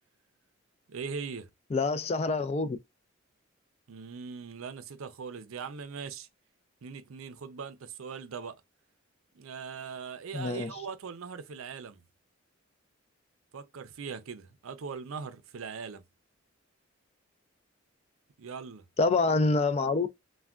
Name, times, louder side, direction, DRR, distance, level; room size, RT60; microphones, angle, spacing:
voice 1, 0.9-1.5 3.9-6.3 6.8-8.6 9.3-12.0 13.5-16.0 18.4-18.9, right 5 dB, 85° right, 0.5 m, -40 dB
voice 2, 1.7-2.8 10.3-10.7 19.0-20.1, left 3 dB, 30° left, 0.3 m, -26 dB
3.3 x 2.2 x 2.3 m
head